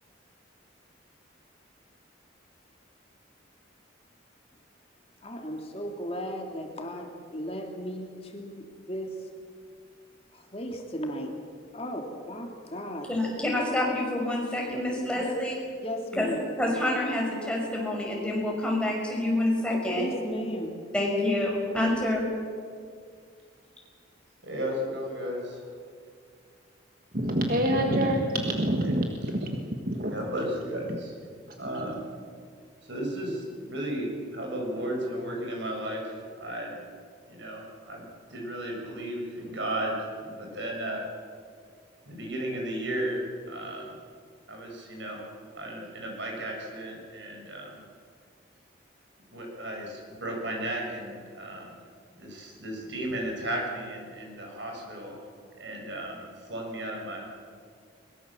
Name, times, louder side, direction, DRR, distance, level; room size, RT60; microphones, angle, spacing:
voice 1, 5.2-9.3 10.3-11.3 11.7-13.1 14.0-14.2 15.1-15.4 15.8-16.4 19.7-20.8, equal, 30° left, 2 dB, 2.5 m, -36 dB
voice 2, 13.1-15.5 16.2-16.3 16.6-20.0 20.9-22.2, left 1 dB, 5° left, -2 dB, 5.6 m, -27 dB
voice 3, 24.4-25.7 28.8-28.9 30.1-31.1 31.6-32.0 32.9-36.8 37.3-38.0 38.3-41.1 42.1-44.0 44.5-45.3 45.5-47.8 49.3-51.8 52.2-55.2 55.6-57.3, right 1 dB, 65° right, 0 dB, 7.0 m, -34 dB
voice 4, 27.1-30.1 30.9-31.0, right 1 dB, 45° right, 3 dB, 1.7 m, -27 dB
22.5 x 22.5 x 7.5 m, 2.1 s
head